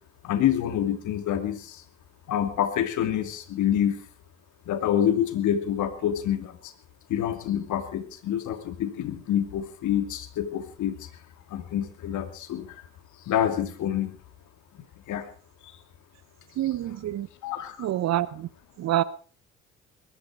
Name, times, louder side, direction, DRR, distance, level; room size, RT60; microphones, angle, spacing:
voice 1, 0.2-1.8 2.3-4.0 4.7-6.7 7.1-10.9 11.5-12.8 13.3-14.2 15.1-15.3 16.6-16.7 17.4-17.9, left 10 dB, 60° left, 2.7 m, -27 dB
voice 2, 16.6-17.3 17.8-18.5 18.8-19.0, right 13 dB, 50° right, 1.0 m, -26 dB
21.5 x 12.0 x 4.8 m
hypercardioid pair, 55°, 34 cm